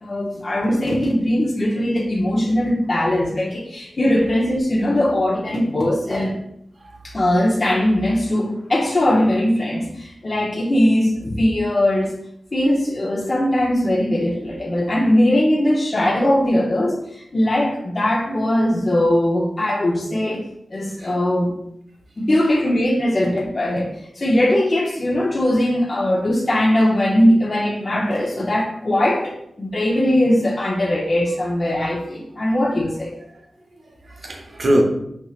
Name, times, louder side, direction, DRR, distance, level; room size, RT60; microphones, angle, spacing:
voice 1, 0.0-6.4 7.0-12.2 12.5-21.5 22.2-33.1, left 1 dB, 50° left, 0.7 m, -20 dB
voice 2, 33.8-34.8, equal, 65° right, 0.9 m, -24 dB
4.3 x 3.0 x 2.4 m
cardioid pair, 40°, 0 cm